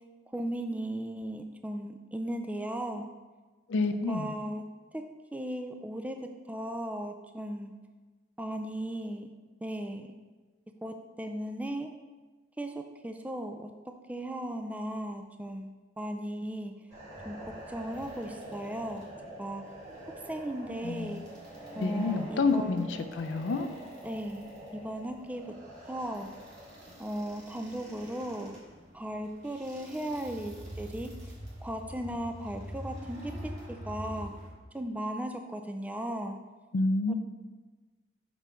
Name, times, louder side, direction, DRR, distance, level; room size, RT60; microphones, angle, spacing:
voice 1, 0.3-3.1 4.1-4.6 4.9-5.0 5.3-6.2 6.5-7.7 8.4-9.3 9.6-10.1 10.8-11.9 12.6-13.7 14.1-15.7 16.0-16.7 17.3-19.0 19.4-19.6 20.3-21.2 21.8-22.9 24.0-25.4 25.9-26.3 27.0-28.6 28.9-31.1 31.6-33.3 33.9-34.3 34.7-36.4 37.1-37.2, right 1 dB, 10° right, 5 dB, 0.4 m, -36 dB
voice 2, 3.7-4.4 20.8-21.2 21.8-23.7 36.7-37.1, left 3 dB, 90° left, 8 dB, 0.5 m, -29 dB
sound 1, 16.9-34.5, equal, 40° right, 2.1 m, -45 dB
6.1 x 5.3 x 4.3 m, 1.3 s
head